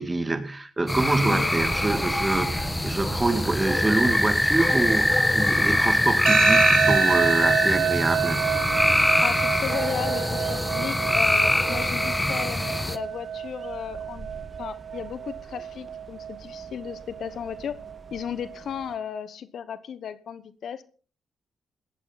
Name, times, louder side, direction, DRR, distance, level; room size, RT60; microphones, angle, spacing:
voice 1, 0.0-8.4, right 2 dB, 25° right, 2.2 m, -26 dB
sound 1, 0.9-13.0, left 1 dB, 15° left, 1.3 m, -23 dB
voice 2, 1.2-1.5 9.2-14.3 14.6-17.8 18.1-20.8, left 8 dB, 70° left, 1.0 m, -35 dB
sound 2, 1.6-19.0, right 4 dB, 40° right, 1.8 m, -45 dB
sound 3, 6.3-19.2, right 9 dB, 75° right, 1.1 m, -29 dB
18.0 x 13.0 x 4.1 m
supercardioid pair, 55°, 0 cm